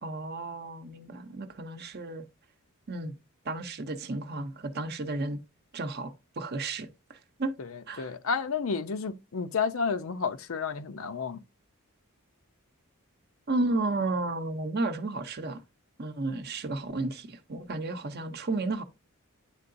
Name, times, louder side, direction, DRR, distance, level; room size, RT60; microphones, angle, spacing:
voice 1, 0.0-2.2 2.9-3.2 3.5-5.4 5.7-7.5 7.9-8.1 13.5-15.6 16.0-18.8, right 2 dB, 45° right, 0.7 m, -33 dB
voice 2, 8.0-11.4, left 5 dB, 65° left, 0.6 m, -31 dB
9.9 x 3.8 x 2.6 m
head